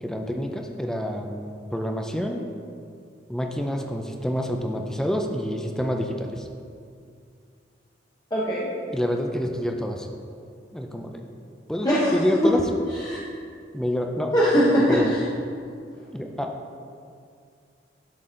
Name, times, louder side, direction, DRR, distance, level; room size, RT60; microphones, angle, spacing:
voice 1, 0.0-2.5 3.3-6.5 8.9-10.1 10.7-11.2 11.7-12.7 13.7-14.3 14.9-15.1 16.1-16.6, equal, 5° left, 3 dB, 0.5 m, -27 dB
voice 2, 8.3-8.7 11.8-12.2 12.4-12.5 13.0-13.2 14.3-15.2, equal, 20° left, -7 dB, 0.9 m, -20 dB
12.0 x 4.0 x 3.8 m, 2.3 s
head